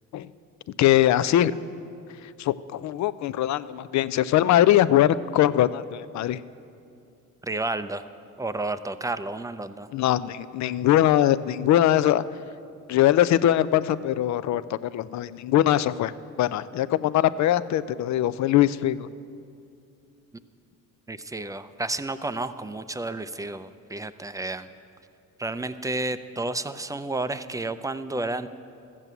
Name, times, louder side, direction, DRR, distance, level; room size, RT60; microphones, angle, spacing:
voice 1, 0.8-1.5 2.4-6.4 9.9-12.2 12.9-16.1 16.4-19.1, left 12 dB, 65° left, 16 dB, 0.5 m, -21 dB
voice 2, 7.4-8.1 8.4-9.9 21.1-24.7 25.4-28.5, right 2 dB, 10° right, 12 dB, 0.4 m, -31 dB
13.5 x 7.5 x 8.1 m, 2.6 s
cardioid pair, 90°, 30 cm